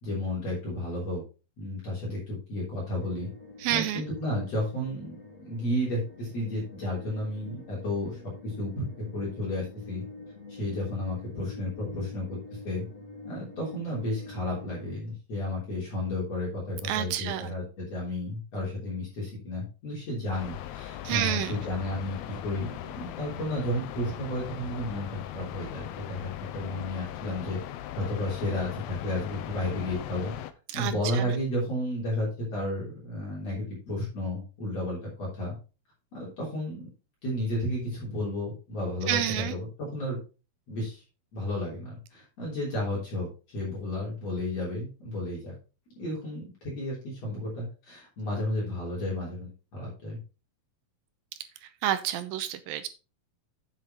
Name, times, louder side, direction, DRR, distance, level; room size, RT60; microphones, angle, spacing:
voice 1, 0.0-1.2 1.6-3.3 3.7-5.2 5.5-8.8 9.1-10.0 10.5-12.4 12.6-12.8 13.2-22.7 22.9-27.6 27.9-30.3 30.7-35.5 36.1-36.9 37.2-40.2 40.7-41.0 41.3-45.5 46.0-50.2, left 1 dB, 45° left, -5 dB, 4.4 m, -32 dB
sound 1, 2.9-14.9, left 2 dB, 30° left, 1.6 m, -47 dB
voice 2, 3.6-4.0 16.9-17.5 21.0-21.5 30.7-31.3 39.1-39.5 51.8-52.9, right 12 dB, 80° right, 11 dB, 2.4 m, -29 dB
sound 2, 20.3-30.5, left 12 dB, 80° left, 2.5 m, -39 dB
7.7 x 7.5 x 4.0 m, 0.32 s
omnidirectional pair, 4.3 m